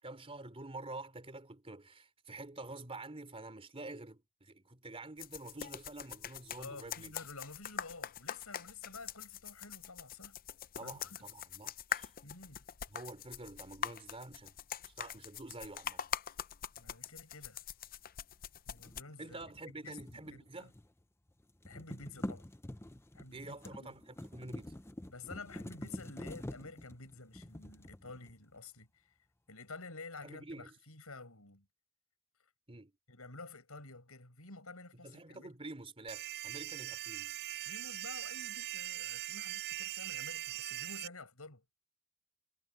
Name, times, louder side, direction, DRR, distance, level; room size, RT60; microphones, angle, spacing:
voice 1, 0.0-7.1 10.7-12.1 12.9-14.5 14.8-16.0 19.2-20.7 23.3-24.7 30.2-30.7 32.7-32.9 35.0-37.4, right 2 dB, 25° right, 3.3 m, -48 dB
sound 1, 5.2-19.0, left 9 dB, 45° left, 0.6 m, -43 dB
voice 2, 6.6-10.4 10.8-11.2 12.2-12.6 16.8-17.6 18.7-19.4 19.8-20.7 21.6-22.5 23.1-23.9 25.1-28.9 29.5-31.7 33.1-35.5 37.7-41.6, left 3 dB, 80° left, 7.4 m, -50 dB
sound 2, 18.8-21.0 21.3-28.6, left 1 dB, 10° left, 0.8 m, -47 dB
sound 3, 36.1-41.1, right 14 dB, 50° right, 0.3 m, -41 dB
head